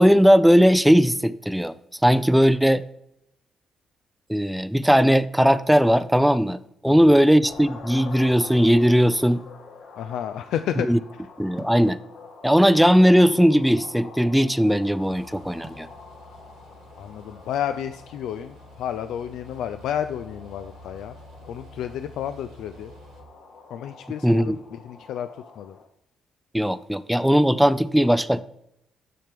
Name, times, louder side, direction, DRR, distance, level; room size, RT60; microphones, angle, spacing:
voice 1, 0.0-1.7 2.0-2.8 4.3-9.4 10.8-11.0 11.4-12.0 12.4-15.9 24.2-24.6 26.5-28.4, equal, ahead, 0.3 m, -18 dB
voice 2, 6.9-7.2 10.0-10.9 17.0-21.1 21.5-22.9 23.7-25.3 25.6-25.8, left 10 dB, 80° left, 0.3 m, -31 dB
sound 1, 7.4-25.9, left 4 dB, 65° left, 1.4 m, -46 dB
sound 2, 11.6-11.9 12.8-14.0 15.6-15.9, right 2 dB, 20° right, 0.8 m, -42 dB
sound 3, 15.0-23.2, equal, 80° right, 1.8 m, -49 dB
7.5 x 5.8 x 3.4 m
cardioid pair, 90°, 0 cm